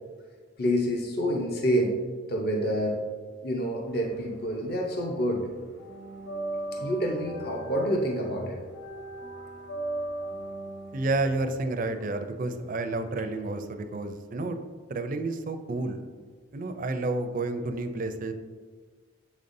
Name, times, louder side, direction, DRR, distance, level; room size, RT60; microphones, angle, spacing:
voice 1, 0.6-2.0 2.3-3.0 3.4-5.4 6.8-8.6, equal, 50° left, 0 dB, 0.7 m, -27 dB
sound 1, 3.9-5.0 5.3-13.2, right 2 dB, 70° left, 1.3 m, -38 dB
voice 2, 10.9-14.6 14.9-16.0 16.5-18.3, right 2 dB, 40° right, 8 dB, 0.4 m, -30 dB
7.1 x 5.3 x 2.6 m, 1.5 s
head